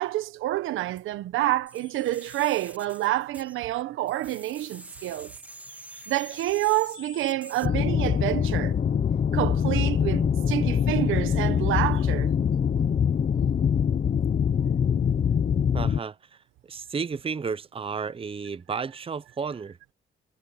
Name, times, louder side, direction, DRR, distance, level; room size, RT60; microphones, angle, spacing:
voice 1, 0.0-5.3 6.1-8.8 9.3-12.3, right 15 dB, 85° right, 1.3 m, -28 dB
sound 1, 1.7-3.8 4.1-7.7, equal, 5° right, 2.3 m, -45 dB
sound 2, 7.6-16.0, left 7 dB, 40° left, 0.8 m, -24 dB
voice 2, 15.7-16.2 16.7-19.8, right 5 dB, 30° right, 0.8 m, -32 dB
cardioid pair, 90°, 20 cm